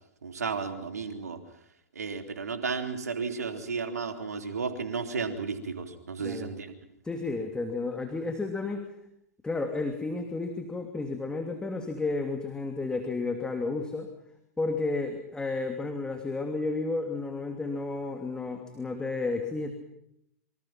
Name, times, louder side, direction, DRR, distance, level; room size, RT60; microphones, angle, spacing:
voice 1, 0.2-1.4 1.9-6.8, right 5 dB, 75° right, 7 dB, 3.4 m, -33 dB
voice 2, 7.0-8.8 9.4-14.1 14.6-19.7, left 3 dB, 10° left, 4 dB, 2.8 m, -32 dB
27.5 x 25.0 x 5.9 m, 0.77 s
figure-of-eight pair, 105°, 9 cm